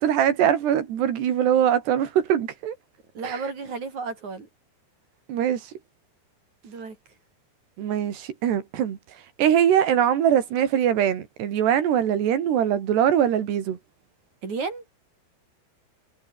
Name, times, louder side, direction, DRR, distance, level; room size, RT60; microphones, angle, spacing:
voice 1, 0.0-2.8 3.2-3.4 5.3-5.7 7.8-9.0 9.4-13.8, right 9 dB, 90° right, 4.7 m, -22 dB
voice 2, 3.2-4.5 6.6-7.0 14.4-14.8, right 4 dB, 45° right, 5.7 m, -32 dB
omnidirectional pair, 4.6 m